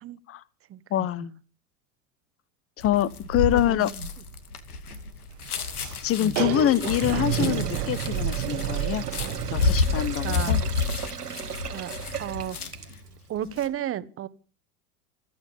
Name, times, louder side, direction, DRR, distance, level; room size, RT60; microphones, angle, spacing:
voice 1, 0.9-1.4 2.8-3.9 6.0-9.0 9.5-10.6, left 12 dB, 30° left, 1.0 m, -25 dB
sound 1, 2.8-13.0 13.4-13.7, left 4 dB, 80° left, 2.4 m, -30 dB
sound 2, 3.3-9.8, right 14 dB, 50° right, 1.7 m, -31 dB
Sink (filling or washing), 6.3-13.2, right 7 dB, 90° right, 2.3 m, -37 dB
voice 2, 10.2-10.5 11.7-11.9 12.2-12.6 13.3-14.3, right 11 dB, 30° right, 1.5 m, -32 dB
27.0 x 9.2 x 5.6 m
hypercardioid pair, 90°, 45 cm